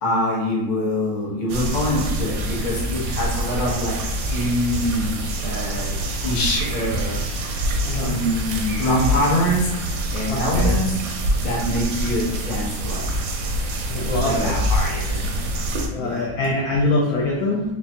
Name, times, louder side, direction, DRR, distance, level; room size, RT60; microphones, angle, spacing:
voice 1, 0.0-4.0 4.3-5.9 6.2-7.2 8.0-11.0 11.4-13.1 14.0-15.6 16.0-16.2, left 1 dB, 65° left, -4 dB, 0.4 m, -25 dB
sound 1, 1.5-15.9, right 1 dB, 70° right, 1.0 m, -25 dB
voice 2, 7.8-8.2 10.3-10.7 13.9-14.6 15.6-17.7, left 2 dB, 90° left, -2 dB, 0.8 m, -24 dB
4.5 x 2.5 x 2.7 m, 0.97 s
omnidirectional pair, 2.2 m